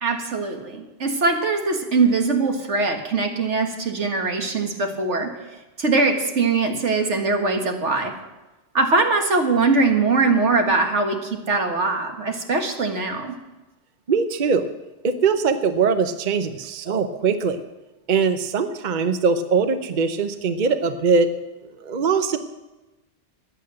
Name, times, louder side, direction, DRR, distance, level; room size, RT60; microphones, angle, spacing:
voice 1, 0.0-5.3 5.8-8.1 8.7-13.3, right 3 dB, 80° right, 4 dB, 2.0 m, -21 dB
voice 2, 14.1-14.7 15.0-17.6 18.1-21.3 21.8-22.4, right 5 dB, 45° right, 9 dB, 0.9 m, -21 dB
15.0 x 10.0 x 7.6 m, 1.1 s
omnidirectional pair, 1.2 m